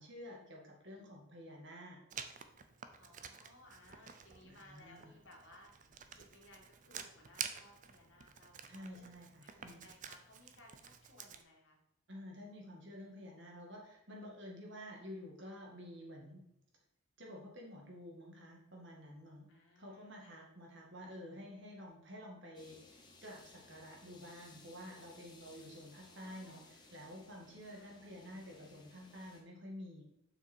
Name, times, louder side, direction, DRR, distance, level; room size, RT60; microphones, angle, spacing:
voice 1, 0.0-2.0 4.4-5.1 8.7-9.8 12.1-16.4 17.2-19.5 19.8-30.0, equal, 55° right, 0 dB, 2.0 m, -50 dB
Writing, 2.1-11.4, right 7 dB, 35° right, 0.5 m, -50 dB
voice 2, 3.0-5.9 6.1-9.1 9.4-11.8 19.5-20.5 25.9-26.7 27.6-28.0, left 1 dB, 60° left, -1 dB, 2.1 m, -61 dB
sound 1, 22.5-29.4, left 3 dB, 20° left, 1.0 m, -61 dB
7.0 x 5.7 x 4.5 m, 0.82 s
head